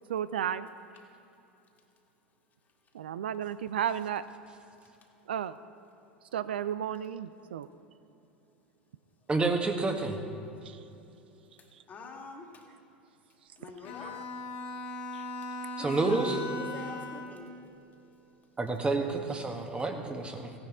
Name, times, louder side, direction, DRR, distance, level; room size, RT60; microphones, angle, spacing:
voice 1, 0.1-0.7 2.9-4.2 5.3-5.5 6.3-7.7 10.7-10.8 14.0-14.1 15.1-15.2, right 9 dB, 75° right, 14 dB, 0.3 m, -33 dB
voice 2, 9.3-10.2 15.8-16.4 18.6-20.5, right 3 dB, 20° right, 4 dB, 1.4 m, -29 dB
voice 3, 11.6-12.7 13.6-14.2 15.8-16.2 16.5-17.5, left 3 dB, 30° left, 1 dB, 2.0 m, -46 dB
Bowed string instrument, 13.8-17.5, left 2 dB, 60° left, 1.8 m, -39 dB
16.5 x 10.5 x 3.7 m, 2.9 s
figure-of-eight pair, 75°, 6 cm